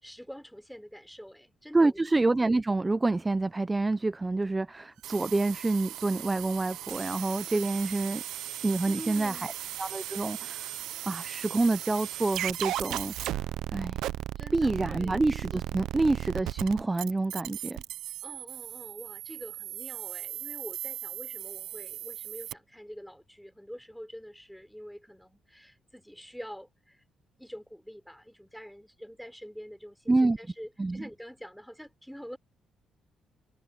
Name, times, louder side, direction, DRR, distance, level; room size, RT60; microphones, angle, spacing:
voice 1, 0.0-2.0 8.8-9.6 14.4-15.2 18.2-27.0 27.4-32.4, equal, ahead, 4.2 m, -46 dB
voice 2, 1.7-8.2 8.6-9.5 9.8-10.8 11.0-13.4 13.7-14.0 14.5-17.8 30.1-30.4 30.8-31.0, right 2 dB, 20° right, 0.6 m, -27 dB
sound 1, 5.0-22.5, right 13 dB, 85° right, 0.5 m, -37 dB
cardioid pair, 90°, 0 cm